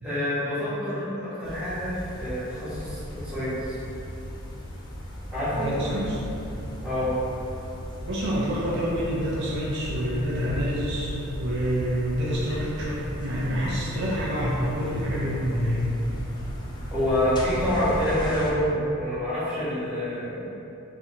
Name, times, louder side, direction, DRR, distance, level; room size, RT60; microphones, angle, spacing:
voice 1, 0.0-3.8 5.3-5.7 6.8-7.2 16.9-20.3, equal, 5° right, -14 dB, 1.2 m, -27 dB
sound 1, 1.4-18.5, equal, 20° left, 0.4 m, -36 dB
voice 2, 5.5-6.2 8.1-15.8, equal, 55° right, -6 dB, 0.5 m, -27 dB
4.1 x 2.6 x 2.9 m, 2.9 s
head